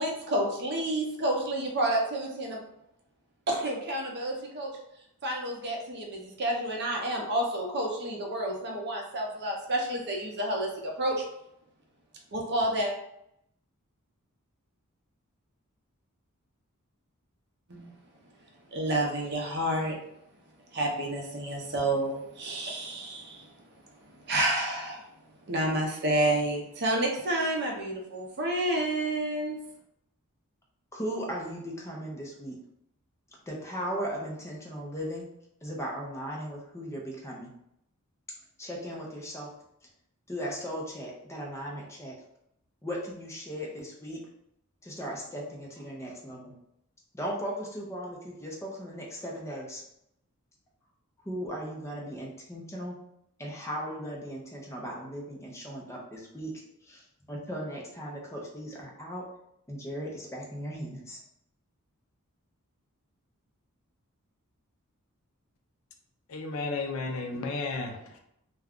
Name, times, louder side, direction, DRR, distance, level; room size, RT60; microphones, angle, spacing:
voice 1, 0.0-2.6 3.5-4.7 5.2-11.2 12.3-12.9 17.7-17.9 18.7-20.0 20.7-23.6 24.0-25.0 25.4-29.6, right 1 dB, 50° right, 0.7 m, -30 dB
voice 2, 30.9-32.6 33.5-35.2 35.6-37.5 38.6-39.5 40.3-42.2 42.8-44.2 44.8-46.5 47.1-49.8 51.3-52.9 53.4-56.5 56.9-57.0 57.3-59.2 59.7-61.2, equal, 15° left, 0.6 m, -37 dB
voice 3, 66.3-68.2, left 3 dB, 65° left, 0.5 m, -33 dB
2.4 x 2.2 x 3.5 m
head